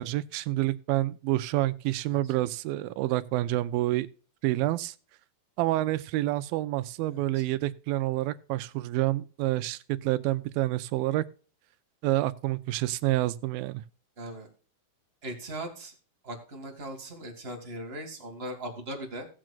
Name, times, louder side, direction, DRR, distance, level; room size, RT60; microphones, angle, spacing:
voice 1, 0.0-4.1 4.4-4.9 5.6-11.2 12.0-13.8, right 16 dB, 80° right, 2.3 m, -28 dB
voice 2, 7.1-7.4 14.2-14.5 15.2-15.9 16.2-19.3, right 1 dB, 35° right, 0.9 m, -39 dB
18.0 x 7.6 x 2.3 m
omnidirectional pair, 4.3 m